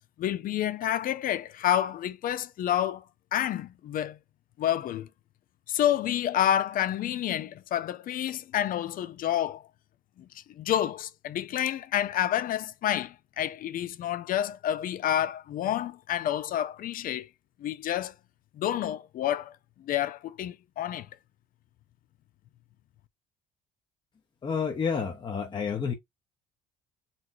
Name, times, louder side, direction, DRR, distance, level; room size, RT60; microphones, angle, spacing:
voice 1, 0.2-3.0 3.3-4.2 4.6-5.1 5.7-9.6 10.6-17.3 17.6-18.1 18.6-21.1, left 11 dB, 55° left, 0.5 m, -29 dB
voice 2, 24.4-25.9, left 6 dB, 25° left, 0.8 m, -29 dB
4.1 x 3.0 x 2.6 m
cardioid pair, 110°, 17 cm